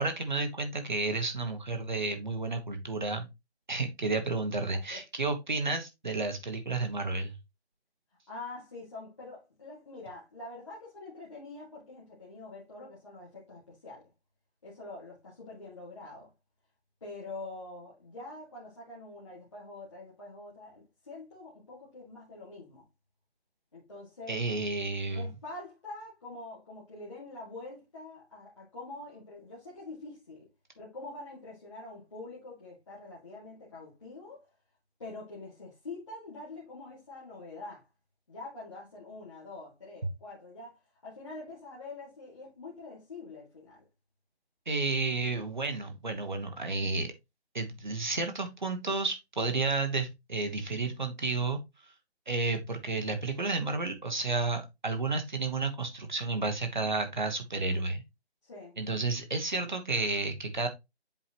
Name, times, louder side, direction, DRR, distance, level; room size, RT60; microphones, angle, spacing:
voice 1, 0.0-3.3 3.7-7.3 24.3-25.3 44.7-47.1 47.5-51.6 52.3-58.0 58.8-60.7, right 3 dB, 45° right, 1.3 m, -31 dB
voice 2, 4.6-5.0 8.3-14.1 14.6-16.3 17.0-22.9 23.7-24.4 25.1-30.5 30.8-34.5 35.0-37.9 38.3-43.8 58.4-58.8, left 2 dB, 25° left, 2.0 m, -45 dB
7.5 x 4.9 x 2.9 m
figure-of-eight pair, 175°, 33 cm